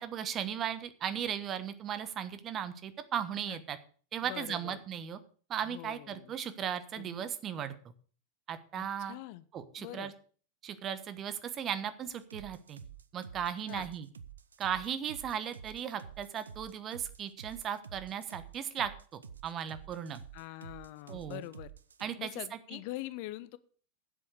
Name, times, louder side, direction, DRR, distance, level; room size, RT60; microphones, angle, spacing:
voice 1, 0.0-3.8 4.1-5.2 5.5-7.7 8.5-9.2 9.5-10.1 10.6-12.8 13.1-14.1 14.6-20.2 21.1-21.4 22.0-22.8, right 9 dB, 30° right, 12 dB, 1.1 m, -37 dB
voice 2, 4.2-4.8 5.6-6.3 7.0-7.3 8.7-9.4 9.8-10.1 13.7-13.9 20.3-21.7 22.2-23.6, left 16 dB, 45° left, 16 dB, 0.6 m, -44 dB
sound 1, 12.1-22.0, right 7 dB, 70° right, 0.7 m, -49 dB
10.0 x 7.7 x 6.6 m, 0.42 s
figure-of-eight pair, 90°, 0 cm